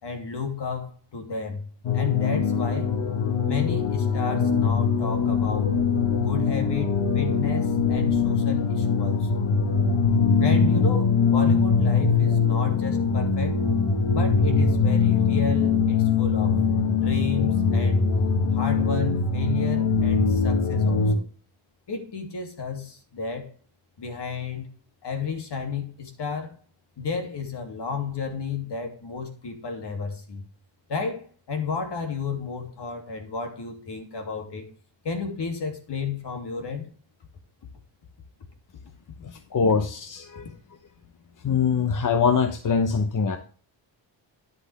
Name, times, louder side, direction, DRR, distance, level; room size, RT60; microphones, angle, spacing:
voice 1, 0.0-1.7 1.9-2.9 3.5-5.7 6.2-9.4 10.4-13.6 14.1-16.6 17.0-18.0 18.5-21.2 21.9-23.5 24.0-24.7 25.0-26.5 27.0-30.4 30.9-34.7 35.0-36.9, left 5 dB, 60° left, 4 dB, 3.0 m, -32 dB
sound 1, 1.8-21.1, left 5 dB, 80° left, 1.8 m, -22 dB
voice 2, 39.2-40.5 41.4-43.4, left 5 dB, 40° left, 7 dB, 1.0 m, -23 dB
11.0 x 7.8 x 3.6 m, 0.42 s
wide cardioid pair, 120°, 47 cm